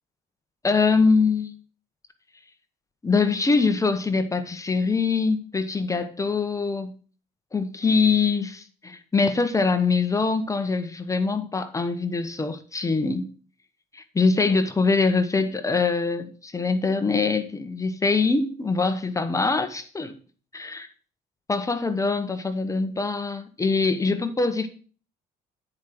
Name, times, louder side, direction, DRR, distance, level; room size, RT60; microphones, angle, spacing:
voice 1, 0.6-1.6 3.0-6.9 7.5-13.3 13.9-20.1 20.5-20.9 21.5-24.7, left 4 dB, 20° left, 0.9 m, -23 dB
9.4 x 5.0 x 5.9 m
cardioid pair, 110°, 17 cm